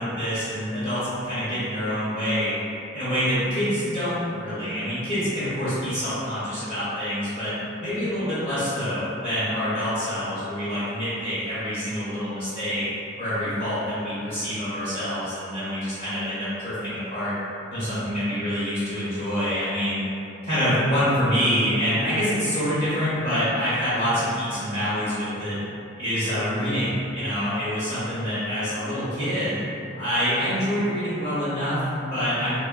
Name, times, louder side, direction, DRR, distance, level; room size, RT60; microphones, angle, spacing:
voice 1, 0.0-2.5 2.9-7.5 7.8-12.8 13.2-17.4 17.7-20.0 20.4-25.6 26.0-29.6 30.0-32.6, equal, 30° left, -14 dB, 0.8 m, -26 dB
2.8 x 2.1 x 2.3 m, 2.7 s
head